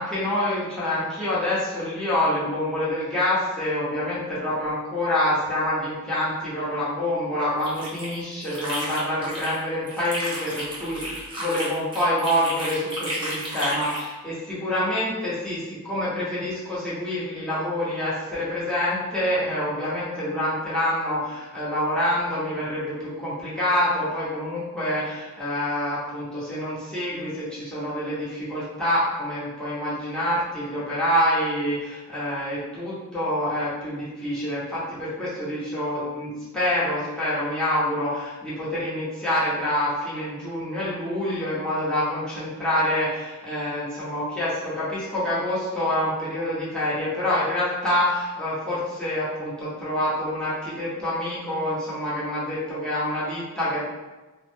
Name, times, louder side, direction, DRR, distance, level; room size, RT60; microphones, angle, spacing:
voice 1, 0.0-53.8, left 1 dB, 5° left, -11 dB, 0.9 m, -26 dB
sound 1, 7.4-9.6 9.9-14.1, right 1 dB, 20° right, 0.7 m, -33 dB
2.6 x 2.0 x 3.2 m, 1.2 s
head